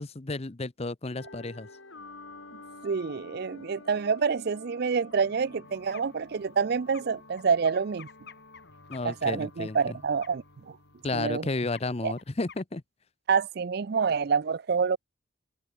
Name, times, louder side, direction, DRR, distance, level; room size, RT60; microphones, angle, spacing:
voice 1, 0.0-1.7 8.9-10.0 11.0-12.8, left 2 dB, 30° left, 0.7 m, -32 dB
sound 1, 1.2-12.2, left 2 dB, 75° left, 5.9 m, -50 dB
voice 2, 2.8-8.1 9.0-10.8 11.1-11.5 12.0-12.1 13.3-15.0, right 5 dB, 55° right, 0.5 m, -27 dB
sound 2, 5.6-9.8 10.1-10.6 10.9-11.0 11.2-11.4 11.7-12.6, left 6 dB, 55° left, 7.6 m, -51 dB
head